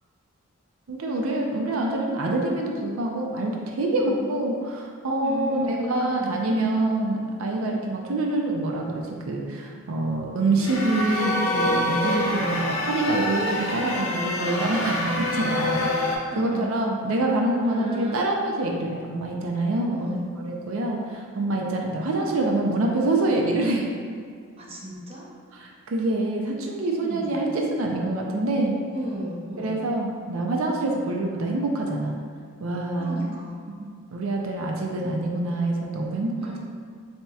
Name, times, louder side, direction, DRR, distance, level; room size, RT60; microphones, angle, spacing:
voice 1, 0.9-23.9 25.6-28.8 29.6-32.2 32.6-33.3 34.1-36.4, right 2 dB, 70° right, 0 dB, 0.5 m, -26 dB
voice 2, 5.2-6.4 12.1-12.4 16.3-16.8 17.6-18.2 19.9-20.3 24.6-25.3 27.0-27.4 28.9-29.8 32.9-33.7 36.4-36.6, right 1 dB, 25° right, -4 dB, 0.6 m, -35 dB
sound 1, 10.6-16.1, left 1 dB, 70° left, 0.6 m, -26 dB
7.2 x 2.9 x 2.3 m, 2.1 s
head